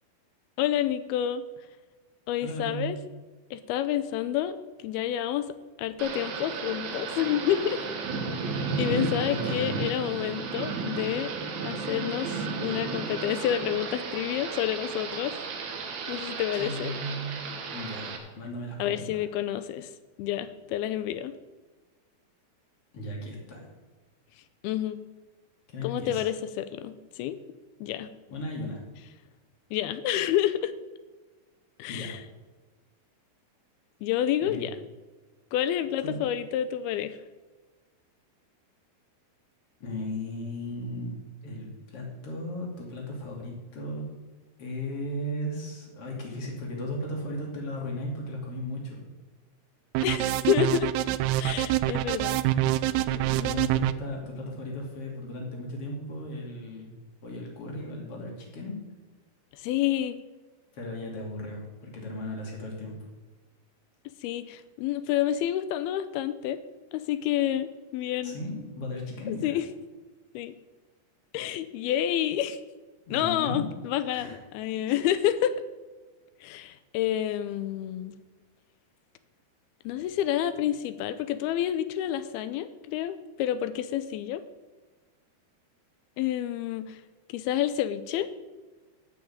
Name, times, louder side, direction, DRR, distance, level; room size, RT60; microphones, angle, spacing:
voice 1, 0.6-1.4 2.3-3.0 3.5-7.8 8.8-11.3 11.6-15.4 16.1-16.9 18.8-19.9 20.2-21.3 24.6-25.0 25.8-27.4 27.8-28.1 29.7-30.7 31.8-32.2 34.0-34.8 35.5-37.2 50.0-50.9 51.4-52.4 59.6-60.2 64.2-66.6 66.9-68.4 69.3-69.7 70.3-70.5 71.3-72.6 73.1-75.6 76.4-78.2 79.9-84.4 86.2-87.0 87.3-88.3, left 11 dB, 80° left, 13 dB, 2.4 m, -29 dB
voice 2, 2.4-2.9 9.3-9.8 16.5-17.3 17.7-19.2 22.9-23.6 25.7-26.3 28.3-28.8 31.9-32.2 34.4-34.6 36.0-36.2 39.8-41.2 41.4-44.1 44.6-49.0 53.1-56.9 57.2-58.8 60.7-62.9 68.2-69.6 73.1-73.7 74.1-74.4 74.9-75.0, left 1 dB, 40° left, -1 dB, 3.1 m, -36 dB
Thunder / Rain, 6.0-18.2, right 4 dB, 65° right, 3.1 m, -33 dB
sound 1, 50.0-53.9, right 15 dB, 80° right, 2.5 m, -25 dB
12.0 x 6.1 x 8.7 m, 1.3 s
omnidirectional pair, 4.8 m